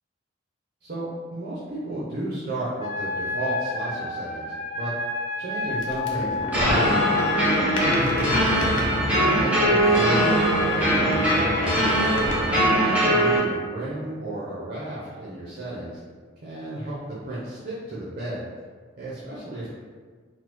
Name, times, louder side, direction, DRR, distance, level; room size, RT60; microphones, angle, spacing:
voice 1, 0.8-4.9 5.4-8.4 8.9-11.8 12.4-16.0 16.4-18.4 19.0-19.7, right 1 dB, 55° right, -9 dB, 0.7 m, -33 dB
Wind instrument woodwind instrument, 2.8-7.7, left 3 dB, 35° left, 1.0 m, -29 dB
sound 1, 5.8-10.0 10.4-12.8, left 1 dB, 65° left, 0.6 m, -31 dB
sound 2, 6.5-13.4, right 1 dB, 10° right, 1.1 m, -21 dB
4.0 x 3.0 x 2.2 m, 1.6 s
head